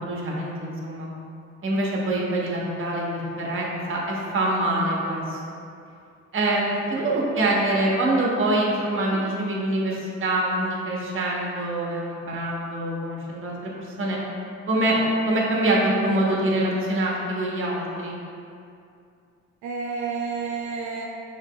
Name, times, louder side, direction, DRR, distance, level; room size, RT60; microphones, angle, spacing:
voice 1, 0.0-1.1 1.6-5.4 6.3-13.7 14.0-14.2 14.7-15.0 15.3-18.1, right 1 dB, 45° right, -3 dB, 1.0 m, -25 dB
voice 2, 19.6-21.0, right 5 dB, 80° right, -2 dB, 0.5 m, -31 dB
6.4 x 2.9 x 2.3 m, 2.5 s
cardioid pair, 90°, 30 cm